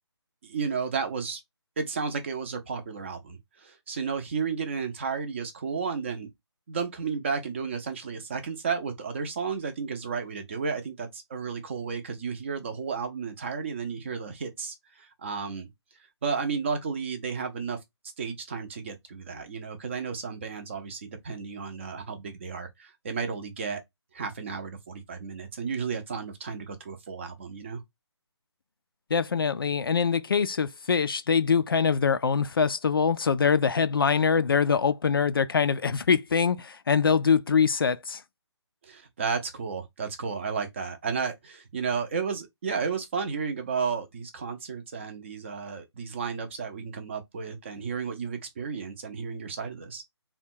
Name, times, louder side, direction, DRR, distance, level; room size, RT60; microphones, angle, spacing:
voice 1, 0.4-1.4 1.8-6.3 6.7-15.7 16.2-17.8 18.2-23.8 24.1-27.8 38.8-50.0, right 5 dB, 25° right, 0.6 m, -33 dB
voice 2, 29.1-38.2, left 6 dB, 50° left, 0.4 m, -24 dB
3.5 x 2.3 x 4.4 m
figure-of-eight pair, 160°, 15 cm